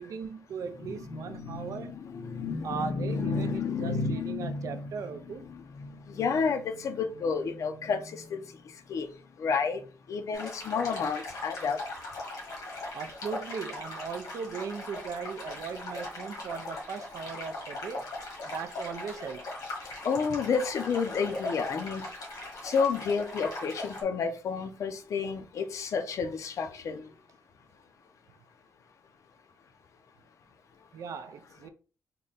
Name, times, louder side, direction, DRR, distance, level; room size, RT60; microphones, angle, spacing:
voice 1, 0.0-2.0 2.6-5.5 12.9-18.1 18.4-19.7 30.9-31.7, right 6 dB, 60° right, 0.4 m, -38 dB
voice 2, 0.9-4.9 5.4-8.4 8.9-9.1 9.4-9.8 10.1-11.8 20.0-22.0 22.6-27.1, left 5 dB, 60° left, 0.6 m, -31 dB
sound 1, 10.3-24.0, left 2 dB, 80° left, 1.4 m, -39 dB
3.7 x 2.2 x 3.9 m
cardioid pair, 135°, 6 cm